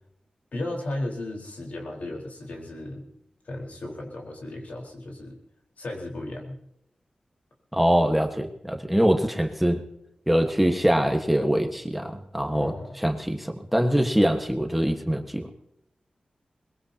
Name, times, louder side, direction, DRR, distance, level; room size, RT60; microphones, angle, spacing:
voice 1, 0.5-3.0 3.4-5.4 5.8-6.6 12.5-13.0, left 1 dB, 75° left, 0 dB, 4.3 m, -35 dB
voice 2, 7.7-9.8 10.3-15.5, equal, 5° right, 4 dB, 1.4 m, -23 dB
22.5 x 21.0 x 2.9 m, 0.77 s
wide cardioid pair, 75°, 3 cm